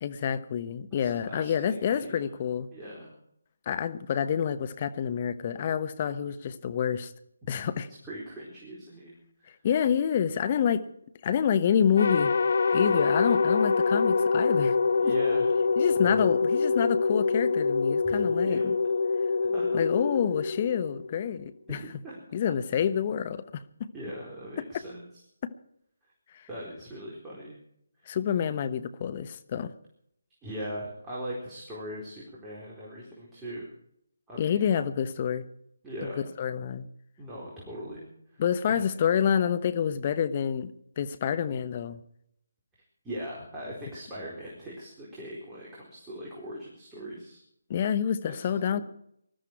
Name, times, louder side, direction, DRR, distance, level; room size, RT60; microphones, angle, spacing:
voice 1, 0.0-2.7 3.7-7.1 7.5-7.9 9.6-10.8 11.2-12.3 12.7-14.8 15.8-18.7 19.7-21.8 22.3-23.6 25.4-25.5 28.1-29.7 34.4-35.4 36.4-36.9 38.4-42.0 47.7-48.8, left 8 dB, 30° left, 12 dB, 1.1 m, -27 dB
voice 2, 0.9-2.3 2.7-3.1 8.0-9.1 9.4-9.5 15.0-15.6 16.0-16.3 18.0-18.7 19.4-19.8 21.7-22.2 23.9-25.0 26.5-27.6 30.4-33.7 34.3-34.6 35.8-36.3 37.2-38.9 43.0-47.4 48.3-48.8, equal, 10° right, -6 dB, 4.3 m, -40 dB
sound 1, 12.0-21.3, left 4 dB, 55° left, 0.9 m, -25 dB
20.5 x 13.0 x 4.7 m, 0.74 s
figure-of-eight pair, 155°, 0 cm